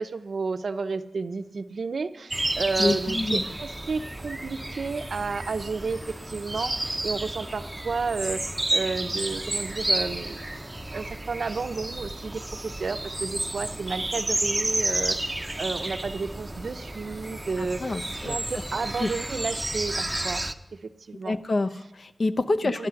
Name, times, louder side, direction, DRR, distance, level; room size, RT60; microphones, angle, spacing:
voice 1, 0.0-10.5 10.9-17.8 18.1-20.4 20.8-21.4 22.6-22.9, right 4 dB, 70° right, 11 dB, 0.6 m, -32 dB
sound 1, 2.3-20.5, right 1 dB, 15° right, 0.6 m, -31 dB
voice 2, 2.8-3.4 17.6-18.4 19.0-19.1 21.2-22.9, left 2 dB, 55° left, 10 dB, 0.6 m, -27 dB
11.5 x 10.5 x 5.8 m, 0.99 s
wide cardioid pair, 85°, 0 cm